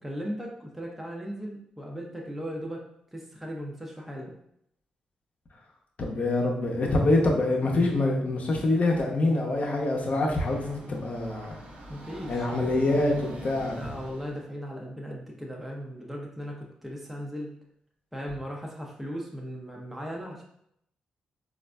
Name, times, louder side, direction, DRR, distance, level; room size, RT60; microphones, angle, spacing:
voice 1, 0.0-2.8 3.1-4.3 11.9-12.5 13.8-17.5 18.1-20.4, equal, 5° right, -1 dB, 0.7 m, -37 dB
voice 2, 6.0-11.6 12.3-13.8, left 2 dB, 50° left, 0 dB, 0.8 m, -25 dB
Train, 9.5-14.4, right 1 dB, 55° right, 0.8 m, -44 dB
3.9 x 2.5 x 2.2 m, 0.74 s
supercardioid pair, 45°, 3 cm